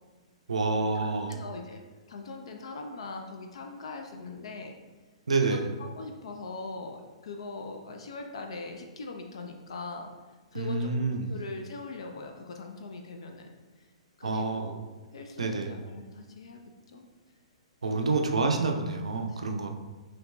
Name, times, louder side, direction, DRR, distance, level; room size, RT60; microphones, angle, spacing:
voice 1, 0.5-1.4 5.3-5.6 10.5-11.3 14.2-14.7 15.4-15.7 17.8-19.7, right 3 dB, 70° right, 3 dB, 0.4 m, -28 dB
voice 2, 1.3-1.8 2.1-4.7 5.4-10.1 10.5-13.5 14.2-14.8 15.1-16.6 16.9-17.0 17.9-18.2 19.3-19.4, left 3 dB, 55° left, 3 dB, 0.4 m, -41 dB
5.6 x 2.8 x 2.2 m, 1.2 s
figure-of-eight pair, 115°, 3 cm